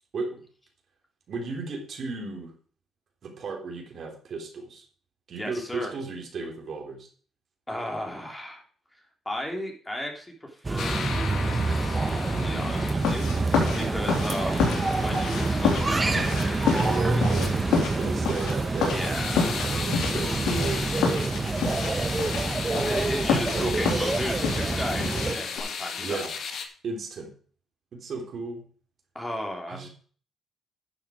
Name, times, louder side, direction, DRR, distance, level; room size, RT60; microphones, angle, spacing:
voice 1, 1.3-2.5 3.2-4.8 5.3-7.1 12.3-12.8 13.1-13.5 16.7-19.3 19.6-20.8 21.4-22.3 23.5-24.1 26.0-26.3 26.8-27.3 27.9-28.6 29.7-29.9, right 4 dB, 55° right, 2 dB, 3.3 m, -35 dB
voice 2, 5.4-5.9 7.7-8.6 8.9-9.0 9.2-11.1 11.4-13.2 13.7-17.5 18.8-19.7 22.9-26.2 29.1-29.9, equal, 10° left, 1 dB, 3.3 m, -35 dB
sound 1, 10.6-25.3, right 3 dB, 25° right, 1.2 m, -27 dB
sound 2, 10.8-26.7, left 6 dB, 60° left, 1.8 m, -36 dB
sound 3, 13.0-25.6, left 6 dB, 90° left, 3.8 m, -30 dB
11.5 x 7.2 x 4.9 m, 0.43 s
cardioid pair, 90°, 0 cm